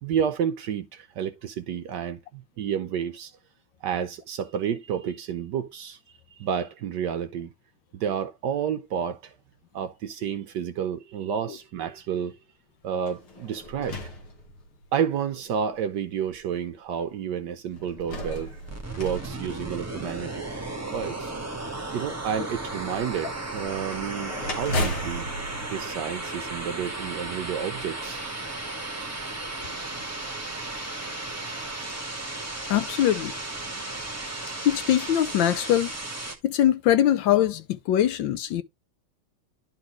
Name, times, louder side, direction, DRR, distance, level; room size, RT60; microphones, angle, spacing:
voice 1, 0.0-3.3 3.8-6.0 6.3-7.5 7.9-9.3 9.7-12.4 12.8-14.0 14.9-18.6 19.0-20.4 20.9-21.3 21.9-25.3 25.7-28.3 29.7-29.9, right 8 dB, 70° right, 1.1 m, -30 dB
sound 1, 13.0-15.0 15.8-15.9 17.7-20.3 23.7-26.8, left 1 dB, 90° left, 3.0 m, -35 dB
sound 2, 18.7-36.4, right 2 dB, 10° right, 1.2 m, -35 dB
voice 2, 32.7-33.3 34.6-35.9 36.4-38.6, left 11 dB, 70° left, 1.3 m, -22 dB
11.5 x 4.0 x 3.0 m
omnidirectional pair, 2.3 m